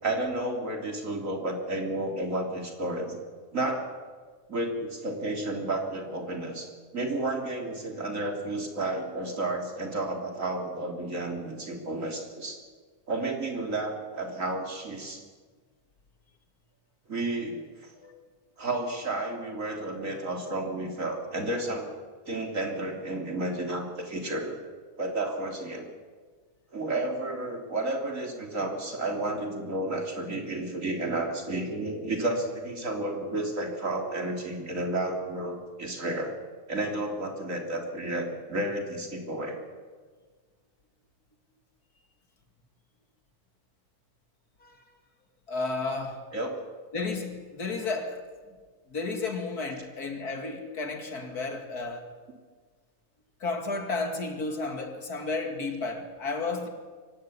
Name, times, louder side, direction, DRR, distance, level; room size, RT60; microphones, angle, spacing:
voice 1, 0.0-3.2 3.5-3.9 4.5-12.6 13.1-15.2 17.1-17.9 18.6-21.9 22.3-24.6 25.0-25.9 26.7-36.3 36.7-39.6 46.3-46.6, right 2 dB, 55° right, 3.7 m, -32 dB
voice 2, 17.9-18.3 44.6-44.8 45.5-46.3 46.9-48.3 48.9-52.2 53.4-56.7, left 3 dB, 80° left, 3.0 m, -32 dB
24.0 x 16.0 x 10.0 m
omnidirectional pair, 1.6 m